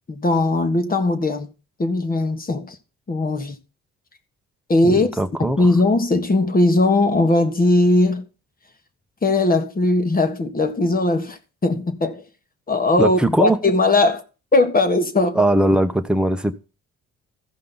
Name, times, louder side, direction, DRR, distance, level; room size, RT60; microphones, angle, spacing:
voice 1, 0.1-1.5 1.8-2.8 3.1-3.6 4.7-5.1 5.4-8.2 9.2-12.2 12.7-14.2 14.5-15.4, left 2 dB, 30° left, 1.5 m, -19 dB
voice 2, 4.8-5.6 13.0-13.6 15.3-16.7, right 1 dB, 5° right, 1.0 m, -20 dB
14.5 x 5.3 x 4.0 m
cardioid pair, 90°, 30 cm